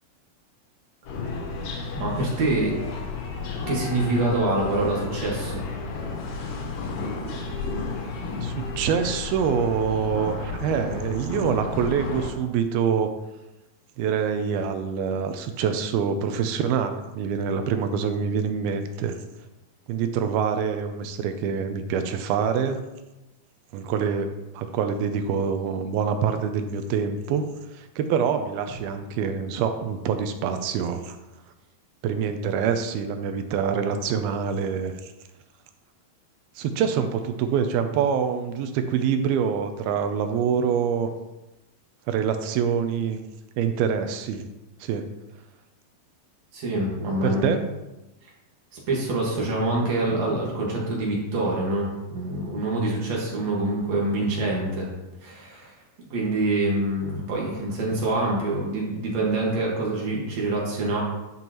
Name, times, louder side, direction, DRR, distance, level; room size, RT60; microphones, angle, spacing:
sound 1, 1.1-12.3, left 4 dB, 70° left, 2.5 m, -32 dB
voice 1, 1.9-2.8 3.7-5.6 46.5-47.5 48.9-54.9 55.2-55.7 56.1-61.0, right 2 dB, 55° right, -3 dB, 2.5 m, -25 dB
voice 2, 8.4-13.1 14.0-19.2 19.9-22.8 23.7-27.5 27.7-31.2 32.0-35.1 36.6-41.1 42.1-43.2 43.6-44.5 44.8-45.1 47.2-47.6 54.1-54.3, right 7 dB, 85° right, 7 dB, 2.5 m, -25 dB
10.5 x 5.5 x 3.0 m, 1.0 s
omnidirectional pair, 4.4 m